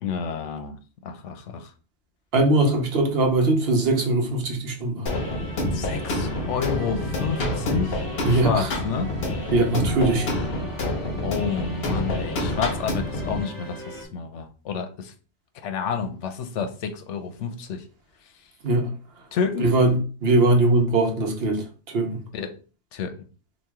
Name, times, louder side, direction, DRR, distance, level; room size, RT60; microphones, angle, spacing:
voice 1, 0.0-1.7 5.7-9.2 11.2-15.1 15.5-17.8 19.3-19.8 22.3-22.6 22.9-23.2, left 6 dB, 90° left, 1.0 m, -30 dB
voice 2, 2.3-5.1 8.2-8.7 9.5-10.3 18.6-18.9 19.6-22.2, right 2 dB, 60° right, 1.0 m, -21 dB
sound 1, 5.1-13.4, left 1 dB, 60° left, 1.0 m, -28 dB
sound 2, 5.1-14.0, equal, 20° left, 0.9 m, -40 dB
3.0 x 2.5 x 3.5 m
omnidirectional pair, 1.2 m